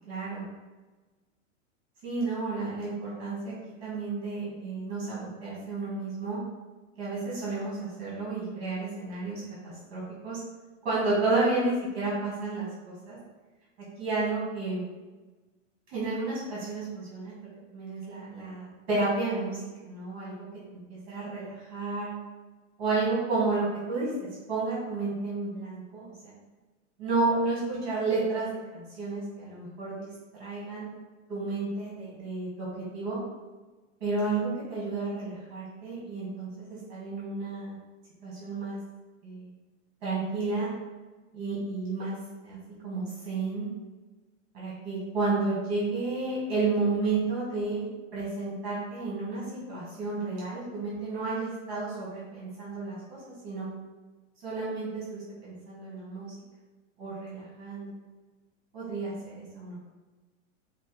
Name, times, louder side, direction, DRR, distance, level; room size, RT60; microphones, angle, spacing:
voice 1, 0.1-0.4 2.0-3.5 3.8-6.4 7.0-10.4 10.8-13.2 14.0-14.8 15.9-17.3 17.7-20.3 20.7-22.1 22.8-26.3 27.0-30.1 30.4-30.9 31.3-32.7 32.9-33.2 34.0-37.7 38.2-38.8 39.2-39.5 40.0-40.7 41.3-42.1 42.4-42.6 42.8-43.7 44.5-53.7 54.4-56.3 57.0-57.9 58.7-59.8, right 3 dB, 30° right, -8 dB, 1.4 m, -31 dB
5.4 x 2.2 x 3.2 m, 1.2 s
supercardioid pair, 175°, 37 cm